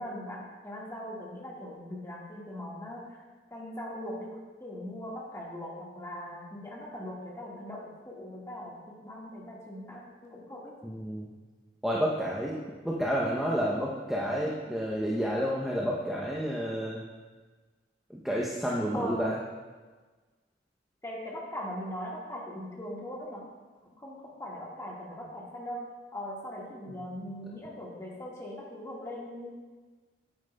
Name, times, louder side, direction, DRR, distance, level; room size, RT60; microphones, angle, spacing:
voice 1, 0.0-3.2 3.5-10.7 18.9-19.4 21.0-23.4 24.0-25.8 26.1-29.5, equal, 15° left, -4 dB, 1.5 m, -40 dB
voice 2, 10.8-11.3 11.8-12.6 12.8-17.0 18.1-19.4, equal, ahead, -5 dB, 0.6 m, -30 dB
9.7 x 8.9 x 2.2 m, 1.3 s
head